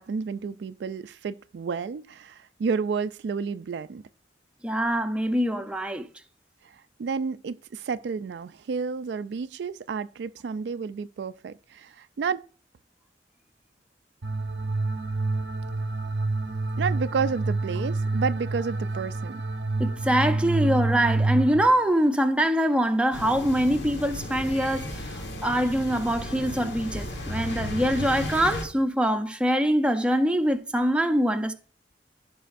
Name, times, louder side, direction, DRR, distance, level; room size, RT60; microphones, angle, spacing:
voice 1, 0.0-4.0 6.6-12.5 16.8-19.4, right 5 dB, 70° right, 0.3 m, -31 dB
voice 2, 4.6-6.1 19.8-31.5, equal, 5° right, 0.6 m, -24 dB
sound 1, 14.2-21.6, right 2 dB, 85° right, 0.7 m, -28 dB
sound 2, 23.1-28.6, left 1 dB, 80° left, 1.5 m, -34 dB
14.5 x 5.5 x 2.5 m
head